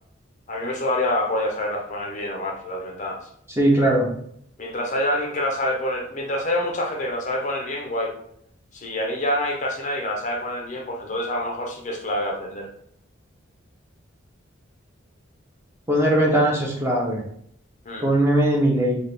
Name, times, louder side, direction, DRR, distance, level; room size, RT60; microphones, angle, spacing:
voice 1, 0.5-3.3 4.6-8.1 8.7-12.7 17.8-18.0, left 1 dB, 35° left, 1 dB, 0.6 m, -27 dB
voice 2, 3.6-4.1 15.9-17.2 18.0-19.0, right 1 dB, 15° right, -3 dB, 0.7 m, -19 dB
3.9 x 2.4 x 3.4 m, 0.68 s
head